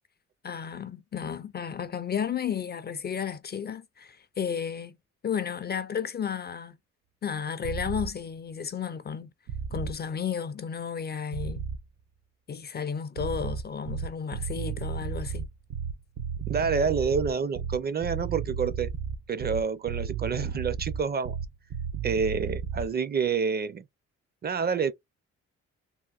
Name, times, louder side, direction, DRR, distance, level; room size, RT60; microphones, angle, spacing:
voice 1, 0.4-5.0 5.2-6.8 7.2-9.3 9.7-11.6 12.5-15.5, left 7 dB, 35° left, 0.4 m, -33 dB
sound 1, 7.6-8.1 9.5-10.0 11.3-11.8 13.2-22.9, right 6 dB, 70° right, 0.7 m, -33 dB
voice 2, 16.5-18.9 19.3-21.4 22.0-23.8 24.4-24.9, right 5 dB, 35° right, 0.5 m, -28 dB
3.6 x 2.5 x 2.4 m
cardioid pair, 90°, 30 cm